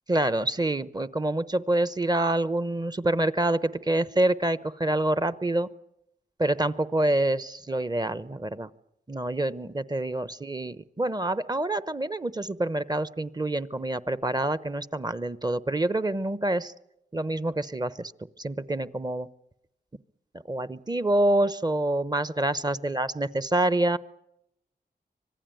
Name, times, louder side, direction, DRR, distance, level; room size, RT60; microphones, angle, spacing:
voice 1, 0.1-5.7 6.4-8.7 9.1-16.7 17.1-18.1 18.4-19.3 20.5-24.0, right 1 dB, 25° right, 15 dB, 0.9 m, -27 dB
25.5 x 18.5 x 9.1 m, 0.84 s
wide cardioid pair, 80°, 17 cm